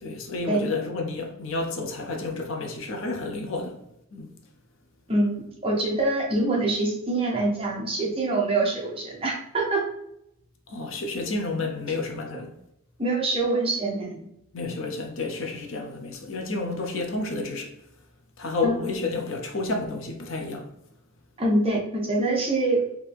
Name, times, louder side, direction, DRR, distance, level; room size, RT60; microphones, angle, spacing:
voice 1, 0.0-3.8 4.1-4.3 10.7-12.5 14.5-17.7 18.4-20.7, left 3 dB, 60° left, 0.7 m, -30 dB
voice 2, 5.1-9.8 11.9-12.0 13.0-14.2 18.6-18.8 21.4-22.8, right 2 dB, 25° right, 0.9 m, -25 dB
4.6 x 2.8 x 3.5 m
head